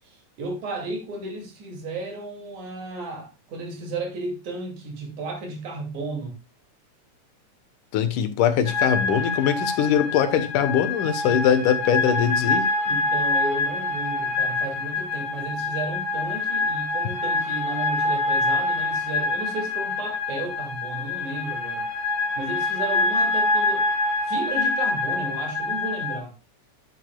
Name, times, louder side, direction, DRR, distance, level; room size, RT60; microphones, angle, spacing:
voice 1, 0.4-6.4 11.2-11.4 12.9-21.9 22.4-23.9 24.3-26.3, right 2 dB, 70° right, 3.9 m, -33 dB
voice 2, 7.9-12.7, left 8 dB, 90° left, 2.7 m, -22 dB
sound 1, 8.7-26.2, left 3 dB, 70° left, 2.6 m, -25 dB
10.5 x 9.4 x 2.3 m
omnidirectional pair, 3.6 m